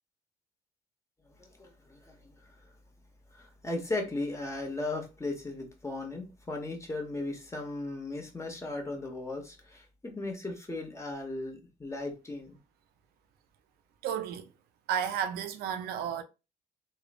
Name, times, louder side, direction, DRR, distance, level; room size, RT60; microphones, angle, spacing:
voice 1, 1.2-2.6 3.3-12.6, left 2 dB, 20° left, 1.0 m, -37 dB
voice 2, 14.0-14.5 14.9-16.2, right 8 dB, 80° right, 0.4 m, -32 dB
3.0 x 2.0 x 2.4 m
supercardioid pair, 65°, 16 cm